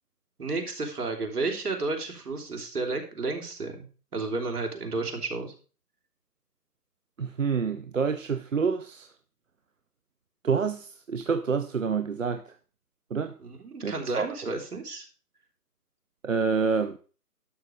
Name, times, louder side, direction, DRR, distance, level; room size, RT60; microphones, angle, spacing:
voice 1, 0.4-3.8 4.1-5.5 13.4-15.1, right 3 dB, 70° right, 3.3 m, -32 dB
voice 2, 7.2-9.1 10.4-12.4 13.1-13.3 13.8-14.4 16.2-17.0, right 5 dB, 55° right, 0.7 m, -27 dB
11.5 x 6.5 x 5.0 m
hypercardioid pair, 175°, 48 cm